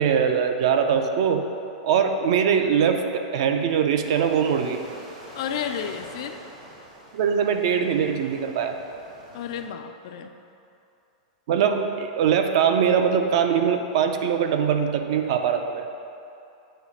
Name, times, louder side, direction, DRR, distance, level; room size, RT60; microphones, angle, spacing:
voice 1, 0.0-1.5 1.8-4.8 7.1-8.8 11.5-15.9, right 7 dB, 45° right, 6 dB, 0.5 m, -22 dB
sound 1, 4.0-9.7, right 1 dB, 65° right, 1.5 m, -45 dB
voice 2, 5.3-6.4 9.3-10.3, left 8 dB, 45° left, 7 dB, 0.4 m, -32 dB
9.0 x 3.2 x 6.3 m, 2.7 s
supercardioid pair, 175°, 4 cm